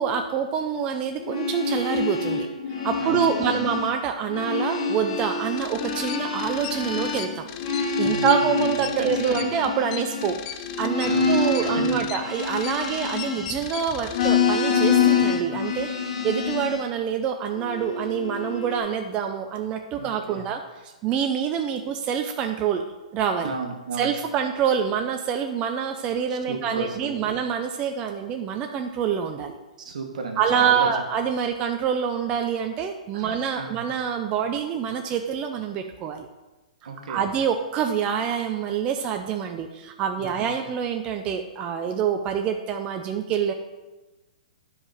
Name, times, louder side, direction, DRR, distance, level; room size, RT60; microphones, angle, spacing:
voice 1, 0.0-2.5 2.8-7.5 8.0-10.4 10.8-22.8 23.1-23.5 24.0-29.6 30.4-36.3 37.1-43.5, right 7 dB, 25° right, 5 dB, 0.6 m, -26 dB
sound 1, 1.1-4.0 4.2-13.7 14.1-16.9 17.5-18.8, left 5 dB, 55° left, 2.4 m, -26 dB
voice 2, 3.0-3.7 8.0-9.5 11.0-12.0 15.1-15.6 19.9-20.5 23.4-24.1 26.3-27.3 29.8-30.9 33.1-33.9 36.8-37.3 40.2-40.6, right 4 dB, 70° right, 4 dB, 1.5 m, -34 dB
sound 2, 5.6-14.3, left 11 dB, 40° left, 0.6 m, -38 dB
9.7 x 4.9 x 5.0 m, 1.1 s
hypercardioid pair, 130°, 4 cm